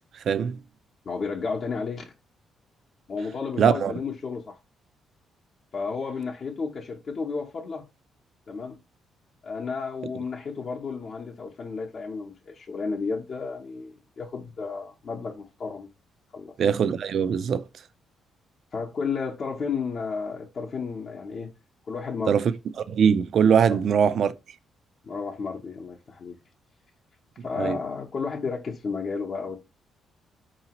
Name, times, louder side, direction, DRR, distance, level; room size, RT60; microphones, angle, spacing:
voice 1, 0.3-0.6 3.6-3.9 16.6-17.7 22.3-22.5 22.9-24.3 27.6-27.8, right 7 dB, 60° right, 0.3 m, -21 dB
voice 2, 1.0-2.0 3.1-4.6 5.7-7.8 8.5-8.8 9.4-15.9 16.3-16.5 18.7-21.5 21.8-22.4 23.7-23.8 25.0-26.4 27.4-29.6, left 5 dB, 50° left, 0.7 m, -32 dB
4.8 x 2.8 x 2.9 m
cardioid pair, 90°, 0 cm